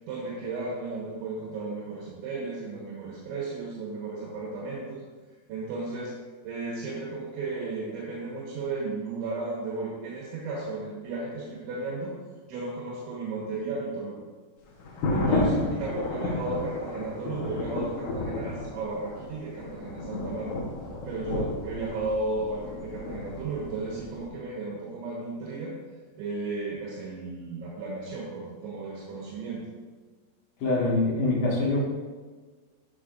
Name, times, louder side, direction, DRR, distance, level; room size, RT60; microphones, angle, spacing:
voice 1, 0.1-5.0 5.5-6.1 6.4-12.1 12.5-14.2 15.1-20.5 21.1-25.7 26.2-29.6, right 3 dB, 85° right, -5 dB, 3.5 m, -34 dB
sound 1, 14.8-24.3, left 2 dB, 80° left, 1.8 m, -32 dB
voice 2, 30.6-31.8, left 2 dB, 60° left, -5 dB, 2.4 m, -24 dB
8.3 x 6.8 x 2.5 m, 1.4 s
omnidirectional pair, 5.2 m